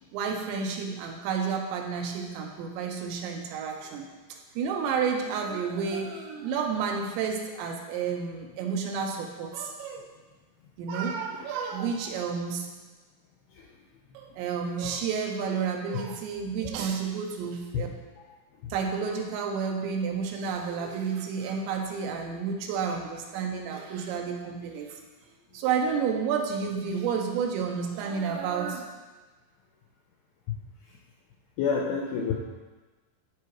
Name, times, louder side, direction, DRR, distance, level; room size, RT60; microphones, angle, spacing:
voice 1, 0.1-10.1 10.8-12.7 14.1-17.9 18.7-25.0 25.5-28.9, right 6 dB, 85° right, 2 dB, 3.1 m, -31 dB
voice 2, 31.6-32.3, left 6 dB, 90° left, -2 dB, 2.2 m, -28 dB
13.0 x 4.8 x 3.1 m, 1.3 s
omnidirectional pair, 5.1 m